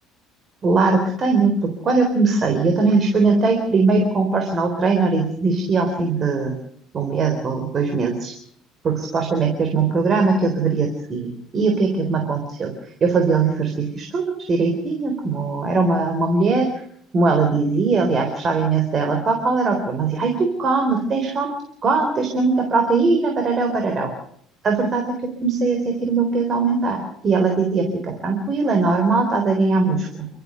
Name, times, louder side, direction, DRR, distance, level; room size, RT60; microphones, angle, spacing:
voice 1, 0.6-6.6 6.9-8.3 8.8-16.7 17.1-21.5 21.8-24.1 24.6-30.3, right 4 dB, 30° right, 3 dB, 4.0 m, -20 dB
30.0 x 14.0 x 6.9 m, 0.66 s
cardioid pair, 155°, 0 cm